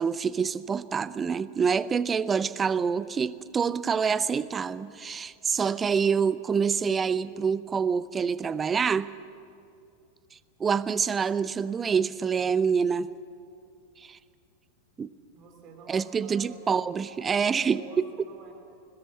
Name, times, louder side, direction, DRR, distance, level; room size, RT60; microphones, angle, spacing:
voice 1, 0.0-9.1 10.6-13.1 14.0-14.2 15.0-15.1 15.9-18.0, right 6 dB, 20° right, 17 dB, 0.7 m, -26 dB
voice 2, 15.3-16.6 17.4-18.5, right 3 dB, 35° right, 3 dB, 3.8 m, -48 dB
22.0 x 20.0 x 7.6 m, 2.4 s
figure-of-eight pair, 90°, 0 cm